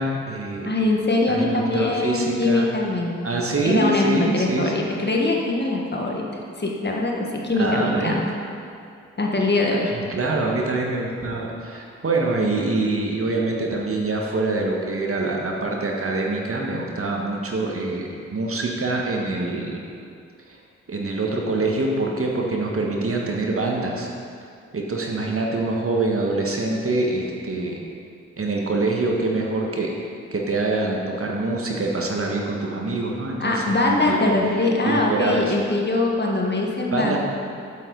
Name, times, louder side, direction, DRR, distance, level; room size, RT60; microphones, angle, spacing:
voice 1, 0.0-0.7 1.3-2.7 3.2-4.9 7.6-8.2 9.9-19.8 20.9-24.1 24.7-27.8 28.4-29.9 30.3-34.3 34.8-35.6 36.9-37.2, right 2 dB, 40° right, -1 dB, 1.5 m, -25 dB
voice 2, 0.6-3.2 3.6-6.3 6.6-8.3 9.2-9.9 33.4-37.2, left 2 dB, 30° left, -1 dB, 1.6 m, -22 dB
8.2 x 7.5 x 4.0 m, 2.4 s
hypercardioid pair, 40°, 34 cm